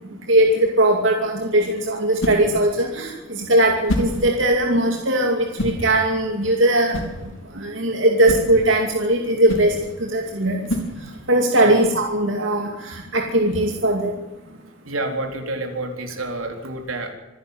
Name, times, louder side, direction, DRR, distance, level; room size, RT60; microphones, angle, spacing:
voice 1, 0.3-7.0 7.5-10.7 11.3-14.1, right 1 dB, 65° right, 1 dB, 2.6 m, -19 dB
sound 1, 0.9-11.4, equal, 70° left, 4.2 m, -31 dB
voice 2, 14.8-17.1, right 2 dB, 85° right, 4 dB, 4.0 m, -29 dB
25.5 x 11.0 x 9.5 m, 1.1 s
head